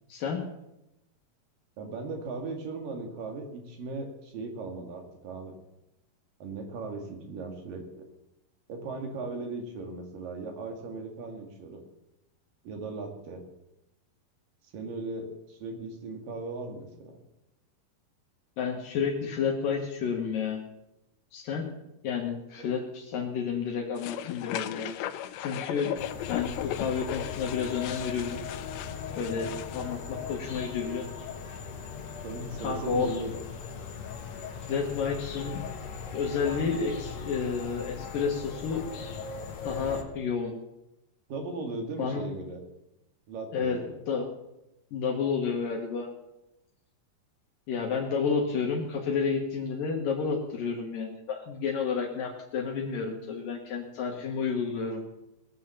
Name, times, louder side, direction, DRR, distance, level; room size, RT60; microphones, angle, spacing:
voice 1, 1.8-5.5 6.4-8.1 8.7-11.8 12.6-13.4 14.7-17.2 22.6-22.7 29.3-29.5 32.2-33.4 41.3-42.6 43.3-44.0, right 3 dB, 65° right, 3 dB, 3.8 m, -38 dB
voice 2, 18.6-20.6 21.3-21.6 22.0-24.9 25.4-25.9 26.3-28.4 29.1-31.3 32.6-33.1 34.6-35.6 36.1-38.8 39.6-40.5 42.0-42.2 43.5-43.8 44.1-44.2 44.9-46.1 47.7-55.0, left 6 dB, 70° left, -1 dB, 3.0 m, -30 dB
sound 1, 24.0-29.9, left 12 dB, 90° left, 2.6 m, -37 dB
sound 2, 26.0-40.0, left 6 dB, 55° left, 2.4 m, -39 dB
20.5 x 7.6 x 7.1 m, 0.90 s
omnidirectional pair, 4.2 m